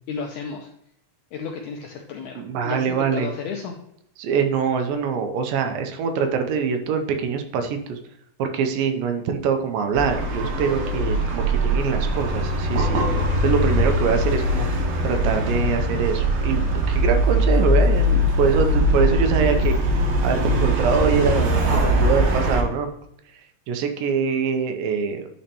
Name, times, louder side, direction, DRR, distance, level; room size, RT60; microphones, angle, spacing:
voice 1, 0.1-0.7 1.3-3.8, left 5 dB, 85° left, 2 dB, 1.7 m, -33 dB
voice 2, 2.4-3.3 4.2-8.0 8.4-22.9 23.7-25.3, right 6 dB, 75° right, 6 dB, 2.3 m, -24 dB
sound 1, 9.9-22.6, equal, 60° right, 2.1 m, -21 dB
10.5 x 4.3 x 2.9 m, 0.78 s
omnidirectional pair, 4.2 m